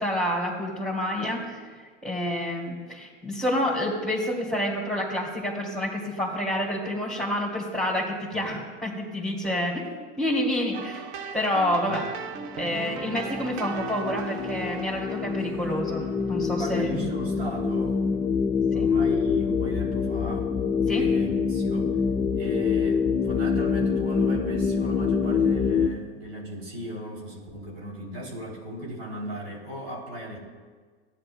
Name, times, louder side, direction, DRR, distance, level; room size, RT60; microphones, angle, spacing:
voice 1, 0.0-1.6 2.0-9.8 10.2-12.0 12.5-16.9 18.7-18.9 20.9-21.0, left 1 dB, ahead, -6 dB, 2.4 m, -28 dB
sound 1, 10.7-16.6, right 5 dB, 55° right, 0.9 m, -38 dB
sound 2, 12.1-25.9, left 5 dB, 15° left, 0.4 m, -26 dB
voice 2, 16.6-18.0 18.7-20.6 20.9-21.9 22.3-30.4, right 1 dB, 75° right, -2 dB, 3.1 m, -36 dB
14.5 x 9.7 x 2.2 m, 1.5 s
hypercardioid pair, 85°, 31 cm